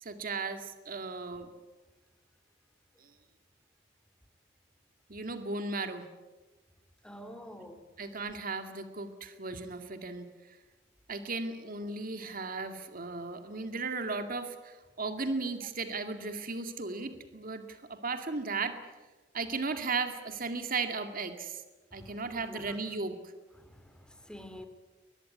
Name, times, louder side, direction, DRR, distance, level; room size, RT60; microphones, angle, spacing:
voice 1, 0.0-1.5 5.1-6.1 8.0-10.3 11.1-18.8 19.3-21.6 21.9-23.2, right 3 dB, 50° right, 2.2 m, -36 dB
voice 2, 7.0-7.8 21.9-22.8 23.6-24.7, equal, 5° left, 2.7 m, -48 dB
22.5 x 20.5 x 9.6 m
head